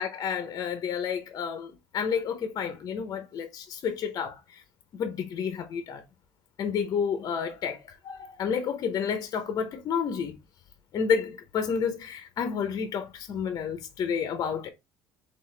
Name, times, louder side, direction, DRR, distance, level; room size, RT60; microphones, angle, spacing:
voice 1, 0.0-4.6 5.0-6.0 6.6-7.8 8.0-10.3 10.9-14.7, left 7 dB, 45° left, 0.8 m, -30 dB
4.0 x 3.4 x 3.3 m
cardioid pair, 135°, 9 cm